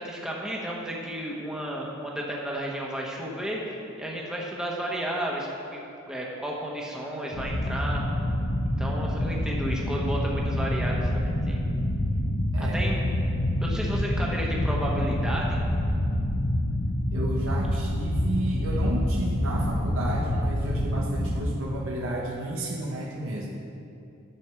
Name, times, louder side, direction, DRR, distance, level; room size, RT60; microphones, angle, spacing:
voice 1, 0.0-5.8 6.1-8.0 8.8-11.6 12.6-13.0 13.6-15.6, right 1 dB, 5° right, -3 dB, 1.2 m, -32 dB
sound 1, 7.3-21.5, left 1 dB, 60° left, 1.1 m, -27 dB
voice 2, 12.5-12.9 17.1-23.5, right 1 dB, 70° right, -3 dB, 1.0 m, -32 dB
11.0 x 7.0 x 4.6 m, 2.6 s
head